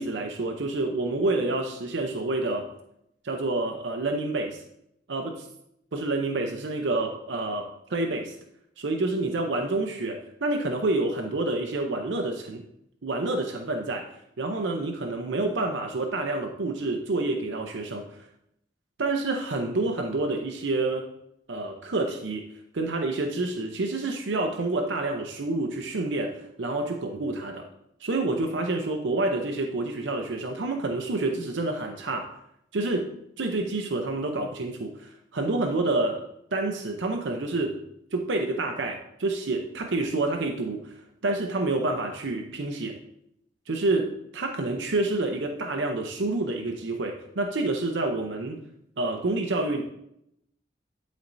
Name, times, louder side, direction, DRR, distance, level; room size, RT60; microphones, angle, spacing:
voice 1, 0.0-2.7 3.2-4.6 5.1-5.5 5.9-8.3 8.8-12.6 13.0-14.1 14.4-18.2 19.0-21.1 21.5-22.5 22.7-27.7 28.0-32.3 32.7-33.1 33.4-36.2 36.5-37.8 38.1-43.0 43.7-48.6 49.0-49.8, right 2 dB, 90° right, 3 dB, 0.7 m, -28 dB
11.0 x 4.2 x 2.6 m, 0.77 s
head